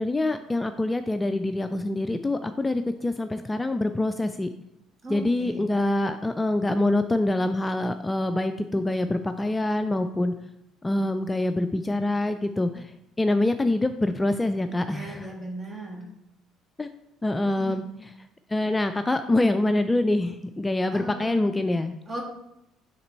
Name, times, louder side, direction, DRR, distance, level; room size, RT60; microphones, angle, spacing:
voice 1, 0.0-4.5 5.1-10.3 10.8-15.3 16.8-16.9 17.2-17.8 18.5-21.9, left 2 dB, 15° left, 9 dB, 0.3 m, -25 dB
voice 2, 5.0-5.7 14.9-16.0 17.4-17.8 20.9-21.5 22.1-22.2, right 2 dB, 30° right, 0 dB, 1.6 m, -37 dB
6.6 x 3.3 x 4.3 m, 0.84 s
figure-of-eight pair, 55°, 0 cm